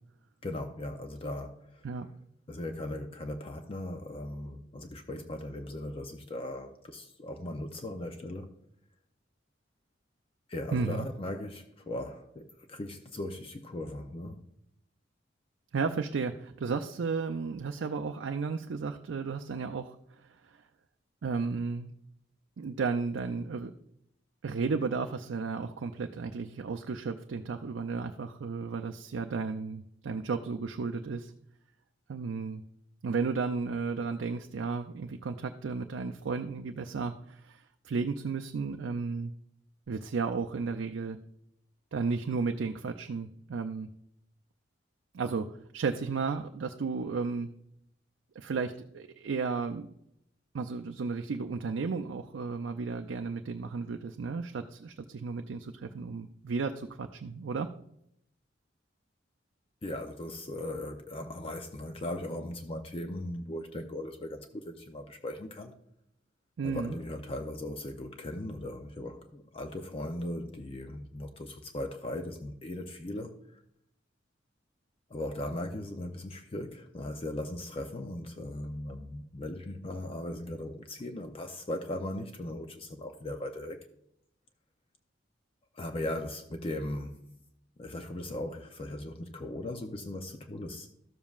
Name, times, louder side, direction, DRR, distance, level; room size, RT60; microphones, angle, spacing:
voice 1, 0.4-1.9 2.5-8.5 10.5-14.4 59.8-65.7 66.6-73.6 75.1-83.9 85.7-87.2 87.8-90.9, left 1 dB, 30° left, 0.5 m, -38 dB
voice 2, 10.7-11.1 15.7-20.6 21.2-21.9 22.6-23.7 24.4-31.3 32.1-32.6 33.0-39.3 39.9-41.2 41.9-43.9 45.1-47.5 48.4-49.9 50.5-57.7 66.6-66.9, right 4 dB, 70° right, 0.4 m, -33 dB
13.0 x 7.2 x 2.4 m
head